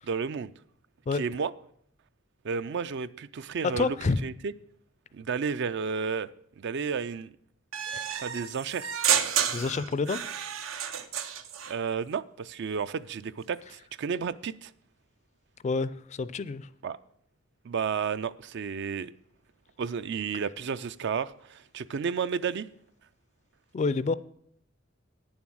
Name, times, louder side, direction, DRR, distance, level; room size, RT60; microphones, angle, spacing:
voice 1, 0.0-0.5 1.1-1.5 2.4-4.0 4.2-4.5 5.1-6.3 6.6-7.3 8.1-8.9 11.7-14.7 16.8-17.0 17.6-19.1 19.8-22.7, right 6 dB, 60° right, 0.4 m, -32 dB
voice 2, 3.6-4.2 9.5-10.2 15.6-16.7 23.7-24.1, left 4 dB, 35° left, 0.4 m, -28 dB
sound 1, 7.7-11.7, right 8 dB, 90° right, 0.8 m, -30 dB
9.4 x 7.2 x 6.2 m
head